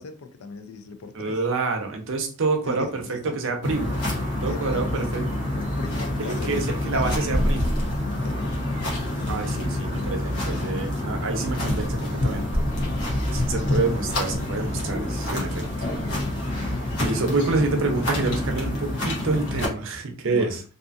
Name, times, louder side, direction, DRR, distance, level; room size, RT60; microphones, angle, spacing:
voice 1, 0.0-1.4 2.6-3.4 4.5-4.8 5.8-6.7 6.9-7.4 8.2-8.6 10.4-10.9 16.1-16.4 20.2-20.6, left 4 dB, 70° left, 0.4 m, -38 dB
voice 2, 1.1-4.0 4.4-5.5 6.2-7.7 9.3-12.6 13.3-15.9 17.0-20.6, right 3 dB, 60° right, 0.6 m, -27 dB
sound 1, 3.6-19.7, left 1 dB, 85° left, 1.0 m, -27 dB
2.6 x 2.4 x 2.5 m
head